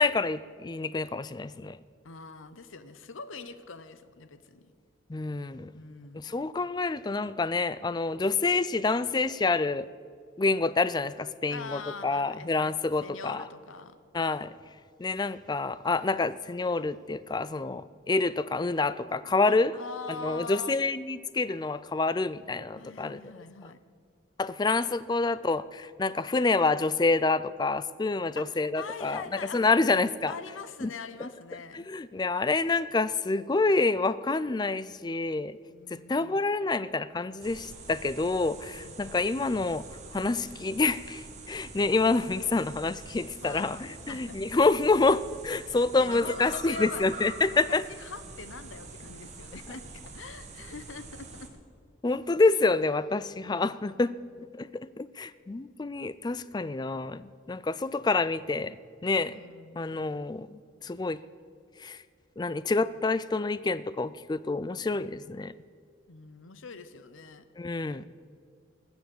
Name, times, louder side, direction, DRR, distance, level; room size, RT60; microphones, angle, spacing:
voice 1, 0.0-1.8 5.1-5.7 6.2-9.9 10.4-13.4 14.1-14.5 15.0-19.7 20.1-23.2 24.4-29.2 29.5-30.3 30.8-30.9 31.2-31.3 31.7-35.6 35.9-39.8 40.1-47.8 52.0-54.1 54.5-58.8 59.0-59.4 59.8-61.2 61.8-62.0 62.4-65.5 67.6-68.0, left 3 dB, 20° left, 16 dB, 0.3 m, -27 dB
voice 2, 2.0-4.7 5.7-6.3 11.5-12.5 13.0-14.0 19.4-20.8 22.8-23.8 28.4-29.6 30.3-31.9 35.7-36.4 38.7-39.0 43.4-43.7 44.1-44.4 46.0-47.1 47.5-51.5 59.2-60.0 66.1-67.5, left 4 dB, 85° left, 12 dB, 0.8 m, -43 dB
sound 1, 37.4-51.5, right 3 dB, 35° right, 1.6 m, -45 dB
20.0 x 7.1 x 7.7 m, 2.1 s
head